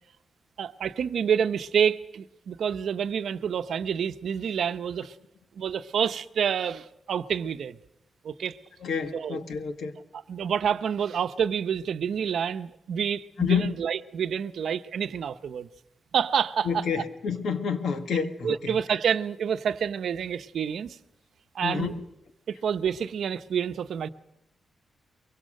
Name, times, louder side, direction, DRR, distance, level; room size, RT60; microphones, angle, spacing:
voice 1, 0.6-5.1 5.6-7.8 8.2-8.6 9.1-9.4 10.1-15.7 16.1-16.9 18.4-21.0 21.5-21.9 22.5-24.1, right 7 dB, 70° right, 0.8 m, -28 dB
voice 2, 8.8-9.9 13.4-13.7 16.6-18.7 21.6-21.9, left 6 dB, 80° left, 1.7 m, -28 dB
24.0 x 22.5 x 6.5 m
wide cardioid pair, 150°, 0 cm